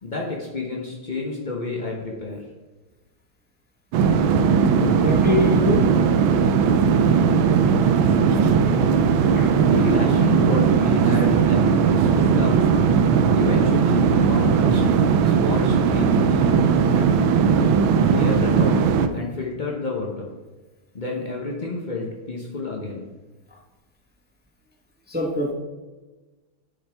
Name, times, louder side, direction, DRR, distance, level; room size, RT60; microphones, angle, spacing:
voice 1, 0.0-2.4 9.7-12.7 13.3-14.8 15.2-16.6 16.9-17.2 18.0-18.8 19.1-20.3 20.9-23.1, left 3 dB, 70° left, -1 dB, 0.4 m, -29 dB
sound 1, 3.9-19.1, right 6 dB, 80° right, 1.4 m, -18 dB
voice 2, 5.0-5.8 9.3-9.5 25.1-25.5, left 1 dB, 10° right, -1 dB, 0.6 m, -23 dB
10.5 x 5.5 x 3.4 m, 1.2 s
omnidirectional pair, 2.3 m